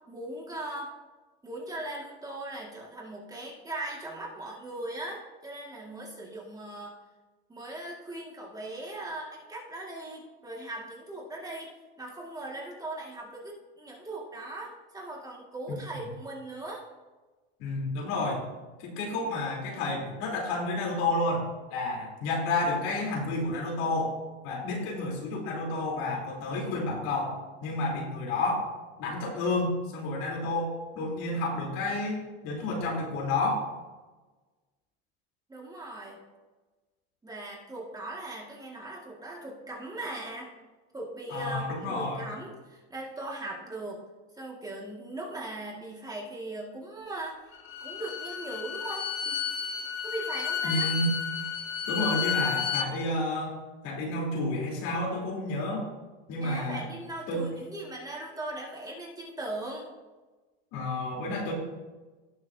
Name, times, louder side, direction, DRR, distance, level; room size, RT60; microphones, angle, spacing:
voice 1, 0.1-0.9 1.4-6.9 7.5-11.7 12.0-16.8 35.5-36.2 37.2-40.5 40.9-44.0 44.4-47.4 47.8-49.4 50.0-50.9 56.4-59.9, right 2 dB, 10° right, -2 dB, 2.0 m, -39 dB
voice 2, 17.6-18.4 18.8-24.1 24.4-28.7 29.0-33.7 41.3-42.3 50.6-51.1 51.9-53.6 53.8-55.9 56.3-56.8 57.3-57.5 60.7-61.5, left 2 dB, 65° left, -2 dB, 3.6 m, -30 dB
Bowed string instrument, 47.5-52.9, left 7 dB, 40° left, 1.6 m, -32 dB
18.0 x 6.4 x 2.7 m, 1.2 s
supercardioid pair, 130°, 31 cm